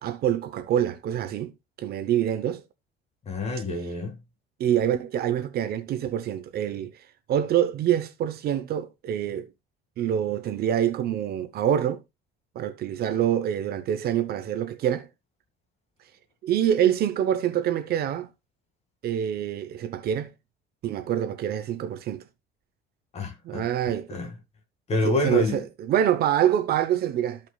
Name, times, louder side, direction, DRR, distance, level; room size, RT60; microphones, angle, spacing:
voice 1, 0.0-1.5 1.8-2.6 4.6-6.9 7.3-9.5 10.0-12.0 12.5-15.1 16.4-18.3 19.0-20.3 20.8-22.2 23.4-24.2 25.0-27.4, right 10 dB, 50° right, 0.8 m, -26 dB
voice 2, 3.3-4.2 23.1-23.6 24.1-24.3 24.9-25.6, left 2 dB, 30° left, 2.1 m, -27 dB
14.0 x 5.4 x 2.3 m
cardioid pair, 155°, 21 cm